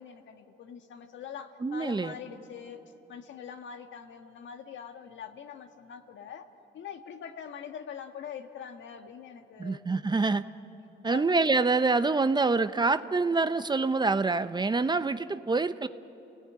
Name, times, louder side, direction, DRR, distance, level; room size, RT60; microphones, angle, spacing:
voice 1, 0.0-2.8 3.1-6.5 6.7-10.1 11.1-11.3, left 7 dB, 70° left, 6 dB, 1.8 m, -43 dB
voice 2, 1.6-2.1 9.6-10.4 11.0-15.9, right 3 dB, 20° right, 12 dB, 0.7 m, -26 dB
30.0 x 17.5 x 9.4 m, 2.9 s
cardioid pair, 90°, 20 cm